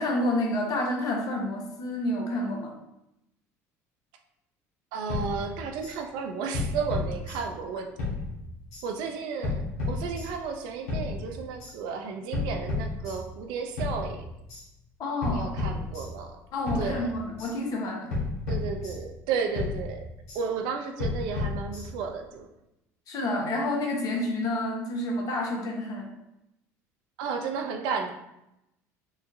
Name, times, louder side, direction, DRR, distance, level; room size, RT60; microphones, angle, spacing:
voice 1, 0.0-2.7 15.0-15.5 16.5-18.1 23.1-26.1, left 1 dB, 50° left, 0 dB, 1.1 m, -29 dB
voice 2, 4.9-7.9 8.8-9.6 9.9-14.3 15.3-16.4 16.7-17.1 18.5-20.1 20.3-22.5 27.2-28.1, right 5 dB, 70° right, 4 dB, 0.5 m, -33 dB
sound 1, 5.1-6.0 6.5-7.7 8.0-8.9 9.4-10.5 10.9-11.7 12.3-13.5 13.8-14.6 15.2-16.4 16.7-17.5 18.1-19.3 19.6-20.4 21.0-22.2, left 3 dB, 85° left, 1.4 m, -33 dB
4.9 x 2.5 x 2.6 m, 0.87 s
hypercardioid pair, 80°, 8 cm